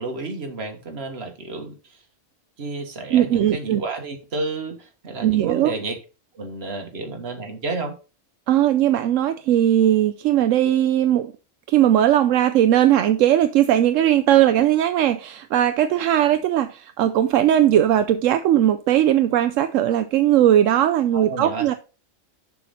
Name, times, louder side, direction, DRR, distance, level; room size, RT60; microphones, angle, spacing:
voice 1, 0.0-2.0 2.6-6.0 6.3-8.0 21.1-21.7, right 3 dB, 55° right, 1.8 m, -31 dB
voice 2, 3.1-3.8 5.2-5.7 8.5-11.3 11.7-21.7, right 11 dB, 80° right, 0.9 m, -18 dB
7.0 x 6.2 x 4.1 m
omnidirectional pair, 1.3 m